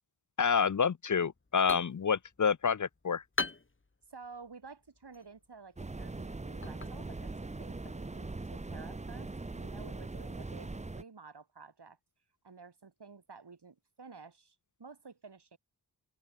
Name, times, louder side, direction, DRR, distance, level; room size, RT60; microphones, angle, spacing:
voice 1, 0.4-3.2, left 6 dB, 50° left, 0.6 m, -28 dB
sound 1, 1.3-8.8, left 3 dB, 30° left, 1.8 m, -44 dB
voice 2, 4.1-9.3 9.5-12.0 12.4-15.6, right 4 dB, 75° right, 5.9 m, -52 dB
sound 2, 5.8-11.0, right 3 dB, 15° right, 0.7 m, -41 dB
open air
wide cardioid pair, 65°, 40 cm